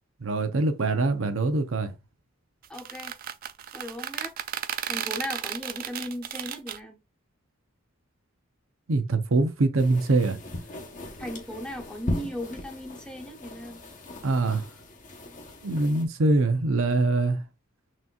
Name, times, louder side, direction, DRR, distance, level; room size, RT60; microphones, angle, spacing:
voice 1, 0.2-1.9 8.9-10.4 14.2-14.6 15.6-17.4, right 2 dB, 80° right, 0.7 m, -23 dB
sound 1, 2.6-6.8, right 10 dB, 45° right, 0.3 m, -34 dB
voice 2, 2.7-3.1 3.7-4.3 4.8-7.0 11.2-13.8, equal, 5° left, 0.8 m, -37 dB
sound 2, 9.8-16.0, left 1 dB, 40° left, 0.9 m, -38 dB
5.9 x 2.9 x 2.3 m
head